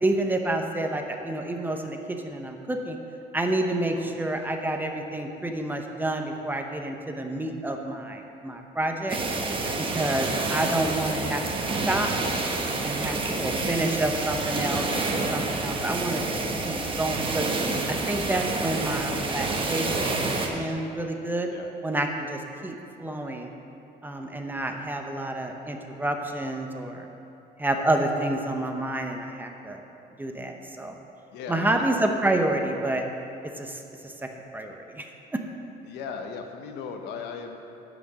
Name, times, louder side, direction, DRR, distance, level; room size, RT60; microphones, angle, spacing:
voice 1, 0.0-3.0 3.3-9.2 9.9-12.1 12.8-16.4 16.6-17.5 17.9-21.5 21.8-23.5 24.0-27.1 27.6-29.8 30.2-30.9 31.5-33.0 33.6-34.1 34.5-35.0, right 1 dB, 10° right, 3 dB, 0.8 m, -29 dB
sound 1, 9.1-20.5, right 3 dB, 30° right, 1.1 m, -28 dB
voice 2, 31.3-31.8 35.8-37.6, left 6 dB, 85° left, 5 dB, 0.9 m, -37 dB
10.5 x 5.1 x 6.3 m, 2.8 s
cardioid pair, 110°, 17 cm